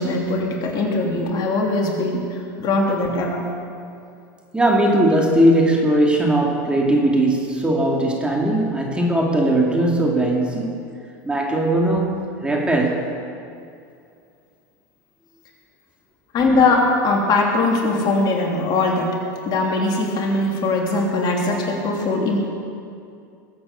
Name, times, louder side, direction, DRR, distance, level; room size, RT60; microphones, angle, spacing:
voice 1, 0.0-3.4 16.3-19.1 19.4-22.5, left 2 dB, 45° left, -1 dB, 3.3 m, -21 dB
voice 2, 4.5-10.8 11.2-13.0, right 1 dB, 10° right, -1 dB, 2.6 m, -19 dB
21.0 x 8.7 x 6.8 m, 2.5 s
hypercardioid pair, 105°, 10 cm